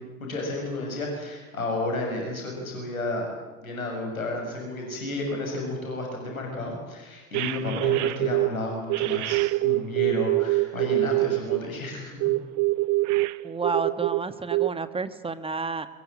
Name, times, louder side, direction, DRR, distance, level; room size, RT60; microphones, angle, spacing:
voice 1, 0.0-3.3 3.6-12.2, left 2 dB, 80° left, 1 dB, 7.0 m, -32 dB
sound 1, 7.3-8.5 8.9-11.6 12.2-14.2 14.5-14.7, right 20 dB, 45° right, 0.9 m, -24 dB
voice 2, 13.4-15.9, right 4 dB, 15° right, 12 dB, 1.6 m, -30 dB
22.5 x 21.0 x 9.1 m, 1.1 s
figure-of-eight pair, 70°, 41 cm